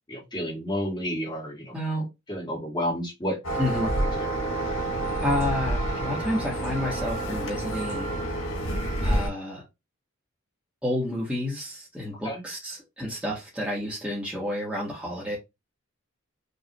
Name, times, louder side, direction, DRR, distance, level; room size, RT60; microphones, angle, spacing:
voice 1, 0.1-1.7 2.3-3.4 4.1-4.3 12.2-12.4, equal, 20° left, 1.8 m, -30 dB
voice 2, 1.7-2.1 3.6-3.9 5.2-8.1 8.6-8.7 9.0-9.6 10.8-15.4, left 1 dB, 5° right, 1.5 m, -30 dB
sound 1, 3.4-9.3, right 1 dB, 90° left, 2.7 m, -28 dB
5.3 x 3.0 x 3.0 m
head